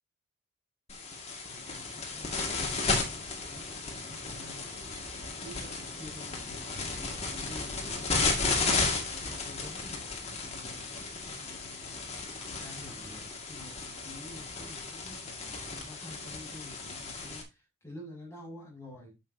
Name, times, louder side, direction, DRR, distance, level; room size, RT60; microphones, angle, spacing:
sound 1, 0.9-17.4, left 3 dB, 30° left, 2.1 m, -34 dB
voice 1, 1.5-3.6 4.0-10.9 11.4-12.1 12.5-19.1, left 1 dB, 15° left, -2 dB, 6.1 m, -50 dB
10.5 x 7.2 x 2.8 m, 0.24 s
head